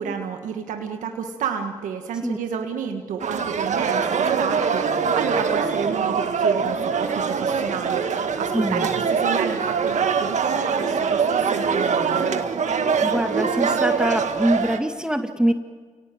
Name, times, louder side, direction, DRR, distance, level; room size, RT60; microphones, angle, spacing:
voice 1, 0.0-8.0 8.4-12.3, right 7 dB, 90° right, 5 dB, 1.6 m, -30 dB
sound 1, 3.2-14.8, right 6 dB, 70° right, 1.9 m, -23 dB
voice 2, 8.5-8.9 13.0-15.5, right 1 dB, 5° right, 6 dB, 2.0 m, -23 dB
29.0 x 18.5 x 7.7 m, 1.5 s
supercardioid pair, 45°, 13 cm